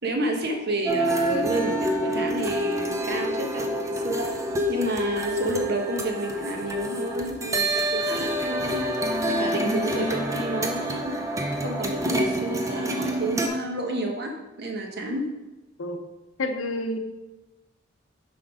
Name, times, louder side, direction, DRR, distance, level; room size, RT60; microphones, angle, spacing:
voice 1, 0.0-4.3 4.7-8.8 9.3-11.2 11.6-15.3, right 1 dB, 55° right, 2 dB, 1.1 m, -30 dB
sound 1, 0.9-13.5, right 1 dB, 15° right, 0.6 m, -27 dB
voice 2, 16.4-17.0, left 1 dB, 85° left, 6 dB, 0.8 m, -28 dB
5.7 x 5.2 x 4.8 m, 1.1 s
head